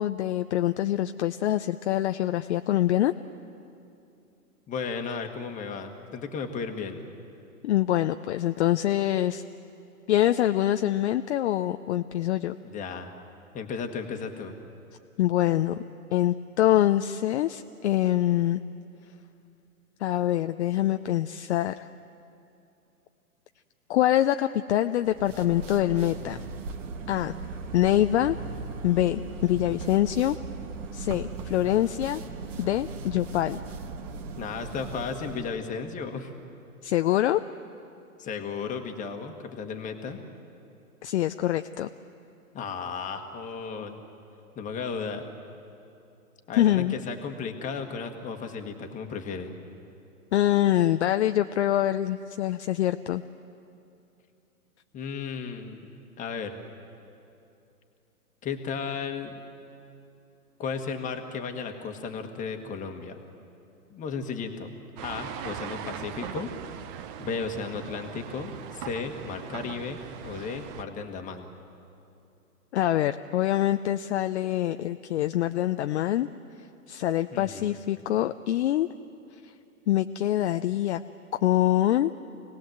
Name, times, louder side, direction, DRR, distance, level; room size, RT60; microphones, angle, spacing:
voice 1, 0.0-3.1 7.6-9.4 10.1-12.6 15.2-15.7 16.1-18.6 20.0-21.9 23.9-26.4 27.1-27.3 27.7-28.4 28.8-30.4 30.9-32.2 32.6-33.6 36.8-37.4 41.0-41.9 46.6-47.0 50.3-53.2 72.7-76.3 76.9-78.9 79.9-81.0 81.3-82.1, left 13 dB, 50° left, 9 dB, 0.6 m, -25 dB
voice 2, 4.7-7.0 12.6-13.1 13.5-14.6 34.4-36.3 38.2-40.2 42.5-44.0 44.5-45.2 46.5-49.6 54.9-55.9 56.2-56.6 58.4-59.4 60.6-63.2 63.9-64.7 65.0-66.5 67.2-71.5 77.3-77.7, left 5 dB, 15° left, 5 dB, 1.6 m, -34 dB
sound 1, 25.0-35.6, right 4 dB, 55° right, 1.5 m, -38 dB
sound 2, 65.0-70.8, right 9 dB, 30° right, 0.9 m, -40 dB
26.0 x 18.5 x 7.9 m, 2.7 s
hypercardioid pair, 135°, 45 cm